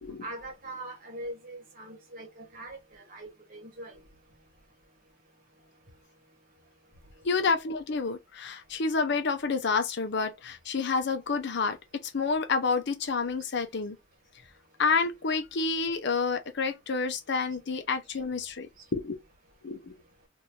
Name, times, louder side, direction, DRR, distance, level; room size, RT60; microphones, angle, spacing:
voice 1, 0.2-4.0, right 1 dB, 45° right, 1.2 m, -42 dB
voice 2, 7.2-14.0 14.8-19.2 19.6-20.0, left 4 dB, 60° left, 0.6 m, -29 dB
3.3 x 2.6 x 2.6 m
head